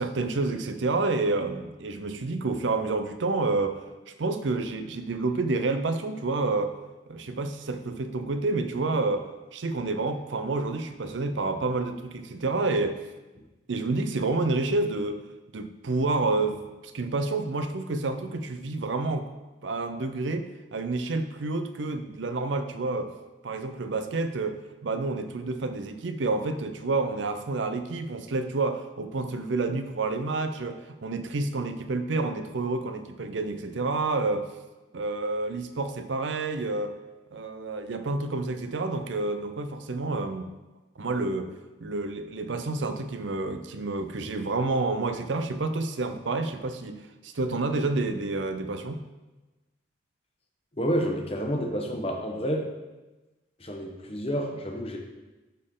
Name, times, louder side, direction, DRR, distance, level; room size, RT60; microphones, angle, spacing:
voice 1, 0.0-6.7 7.1-13.0 13.7-15.2 15.5-19.3 19.6-23.1 23.4-34.5 34.9-36.9 37.3-40.5 41.0-41.5 41.8-49.0, right 3 dB, 75° right, 8 dB, 0.6 m, -29 dB
voice 2, 50.8-52.7 53.6-55.0, equal, 30° left, 2 dB, 0.9 m, -29 dB
11.5 x 4.3 x 3.7 m, 1.1 s
head